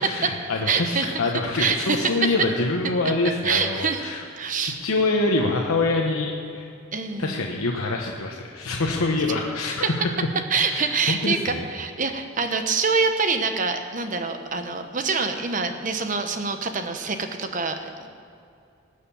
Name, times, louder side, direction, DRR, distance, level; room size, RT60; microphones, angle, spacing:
voice 1, 0.0-4.2 4.6-6.7 7.2-10.1 10.5-11.7 12.4-12.5, left 2 dB, 90° left, 1 dB, 1.0 m, -25 dB
voice 2, 0.7-1.1 1.6-2.3 3.4-4.1 4.3-4.8 6.9-7.6 9.8-9.9 10.5-18.1, right 4 dB, 35° right, 6 dB, 0.9 m, -25 dB
18.5 x 6.6 x 7.0 m, 2.5 s
head